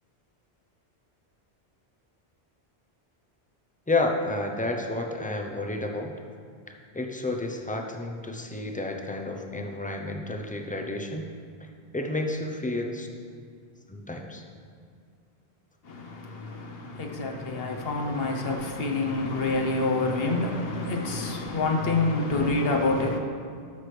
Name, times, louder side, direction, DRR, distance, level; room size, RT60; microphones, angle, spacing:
voice 1, 3.9-6.1 6.7-11.3 11.6-13.1 13.9-14.4, left 2 dB, 10° left, 0.4 m, -31 dB
voice 2, 15.8-23.2, left 2 dB, 65° left, 1.1 m, -27 dB
13.0 x 6.0 x 3.2 m
omnidirectional pair, 1.1 m